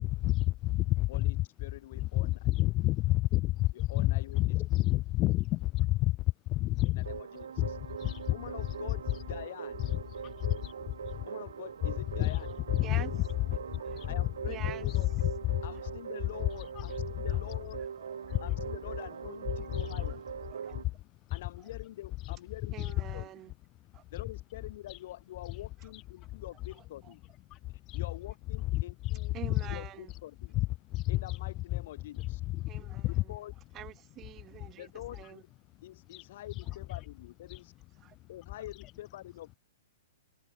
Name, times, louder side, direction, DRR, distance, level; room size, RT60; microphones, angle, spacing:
voice 1, 0.0-1.5 1.9-6.2 6.5-7.1 7.6-7.7 8.0-9.4 9.8-10.7 11.8-13.0 13.5-15.6 16.2-17.8 18.3-18.7 19.5-20.1 21.3-21.4 22.2-22.4 22.8-23.2 24.2-24.3 24.9-25.0 25.4-25.6 25.9-26.0 26.6-26.7 27.9-28.1 28.6-29.8 30.5-33.4 35.2-35.3 36.1-36.2 36.5-37.0 37.5-37.6 38.7-38.9, left 18 dB, 30° left, 2.9 m, -31 dB
voice 2, 1.6-2.3 3.9-4.4 7.3-7.5 8.3-9.0 9.3-9.8 11.3-12.5 14.1-15.1 15.6-17.8 18.4-20.2 21.3-22.8 23.1-23.2 24.1-27.2 27.9-29.3 29.7-29.8 30.2-30.6 31.1-32.4 33.3-33.5 34.8-35.4 35.8-37.7 38.3-39.5, left 14 dB, 50° left, 0.8 m, -46 dB
sound 1, 7.0-20.8, right 7 dB, 65° right, 2.4 m, -41 dB
voice 3, 14.5-14.9 15.8-15.9 17.3-17.4 17.8-18.3 19.1-19.2 20.1-20.2 20.5-20.8 21.6-21.7 22.7-23.5 23.9-24.0 25.8-25.9 26.7-27.1 29.3-30.1 32.7-33.1 33.7-35.4 36.7-36.8 38.0-38.2 38.6-38.7, right 13 dB, 25° right, 1.4 m, -47 dB
figure-of-eight pair, 110°, 0 cm